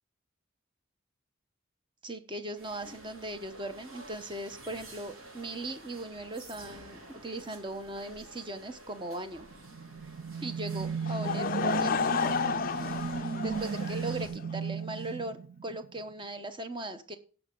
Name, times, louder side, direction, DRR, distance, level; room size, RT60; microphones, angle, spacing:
voice 1, 2.0-9.5 10.4-12.0 13.4-17.2, right 1 dB, 20° right, 9 dB, 0.9 m, -39 dB
sound 1, 2.5-14.3, right 1 dB, 80° right, 3.1 m, -50 dB
sound 2, 9.5-16.0, right 5 dB, 55° right, 0.4 m, -35 dB
Laughter / Crowd, 11.0-14.6, left 6 dB, 40° left, 0.4 m, -31 dB
16.0 x 6.0 x 3.8 m, 0.40 s
head